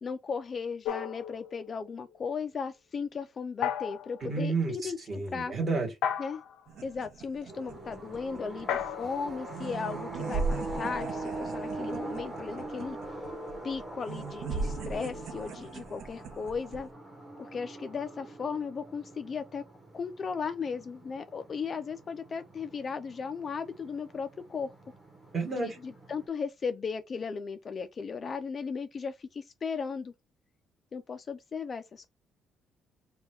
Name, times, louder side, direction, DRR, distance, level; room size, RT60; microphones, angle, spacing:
voice 1, 0.0-5.0 5.3-5.5 6.2-6.4 6.8-13.0 13.6-16.9 17.4-19.6 19.9-24.7 25.5-30.1 30.9-32.1, left 5 dB, 30° left, 0.3 m, -36 dB
sound 1, 0.8-1.9 3.6-4.2 6.0-6.7 8.7-10.4, left 9 dB, 80° left, 0.5 m, -35 dB
voice 2, 4.2-5.9 25.3-25.8, right 3 dB, 25° right, 1.3 m, -31 dB
sound 2, 6.7-16.9, right 4 dB, 55° right, 0.6 m, -39 dB
sound 3, 7.5-26.3, right 2 dB, 10° right, 0.9 m, -43 dB
3.6 x 2.2 x 4.3 m
cardioid pair, 175°, 0 cm